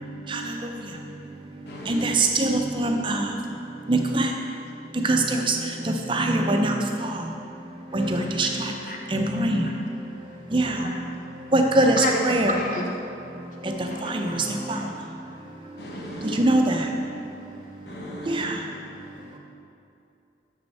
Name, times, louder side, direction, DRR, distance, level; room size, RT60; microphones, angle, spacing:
voice 1, 1.7-2.0 8.0-8.1 15.8-16.4 17.9-18.5, left 1 dB, 65° left, -1 dB, 1.0 m, -38 dB
voice 2, 2.4-3.2 3.9-4.3 5.1-5.2 6.1-6.7 7.9-8.1 8.4-8.5 9.1-9.6 10.5-10.7 11.5-12.6 16.4-16.6, right 1 dB, 25° right, 3 dB, 0.5 m, -21 dB
voice 3, 8.2-8.5 8.8-9.0 9.5-9.7 10.8-11.1 11.9-13.0 13.8-15.2 16.7-16.8 18.7-18.9, left 1 dB, 45° left, 0 dB, 0.5 m, -33 dB
6.5 x 6.3 x 4.2 m, 2.7 s
head